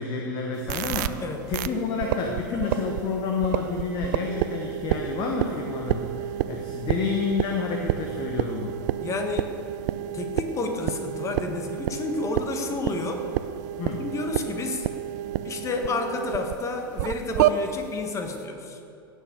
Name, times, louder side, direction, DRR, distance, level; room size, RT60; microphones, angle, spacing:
voice 1, 0.0-8.8 13.8-14.1, left 5 dB, 40° left, 1 dB, 1.4 m, -29 dB
sound 1, 0.7-1.1 1.5-1.7 2.0-3.0 3.4-16.6 17.0-17.5, right 13 dB, 50° right, 0.5 m, -29 dB
voice 2, 9.0-9.5 10.1-13.3 14.0-14.9 15.4-18.8, left 3 dB, 25° left, 5 dB, 1.6 m, -30 dB
17.5 x 6.7 x 6.8 m, 2.8 s
figure-of-eight pair, 95°, 12 cm